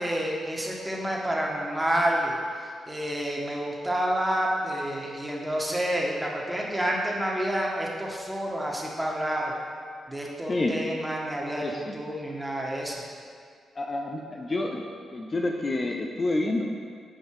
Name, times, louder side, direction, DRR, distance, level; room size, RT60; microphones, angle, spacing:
voice 1, 0.0-9.5 10.1-13.0, right 1 dB, 10° right, -2 dB, 1.7 m, -29 dB
voice 2, 11.6-12.0 13.8-14.8 15.1-16.6, left 2 dB, 35° left, 1 dB, 0.7 m, -28 dB
9.2 x 5.4 x 4.9 m, 2.1 s
cardioid pair, 75°, 0 cm